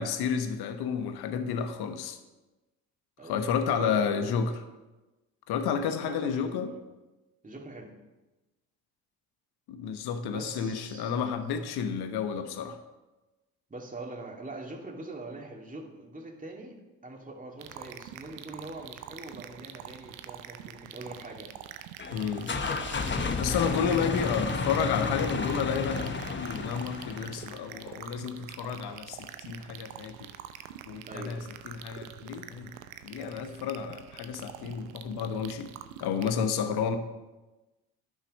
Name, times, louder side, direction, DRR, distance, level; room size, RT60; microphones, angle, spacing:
voice 1, 0.0-2.2 3.2-4.5 5.5-6.7 9.7-12.8 22.1-22.5 23.4-30.3 30.9-31.4 31.6-32.7 33.0-35.7 36.0-37.0, left 7 dB, 65° left, 8 dB, 1.2 m, -31 dB
voice 2, 3.2-3.5 3.8-4.5 5.7-6.8 7.4-8.0 10.3-11.2 13.7-16.8 17.0-21.5 31.1-31.5, right 2 dB, 20° right, 0 dB, 2.3 m, -43 dB
sound 1, 17.6-36.3, right 11 dB, 90° right, 0.7 m, -45 dB
sound 2, 22.0-27.6, left 4 dB, 30° left, 1.1 m, -32 dB
10.0 x 6.3 x 5.3 m, 1.1 s
hypercardioid pair, 60°, 41 cm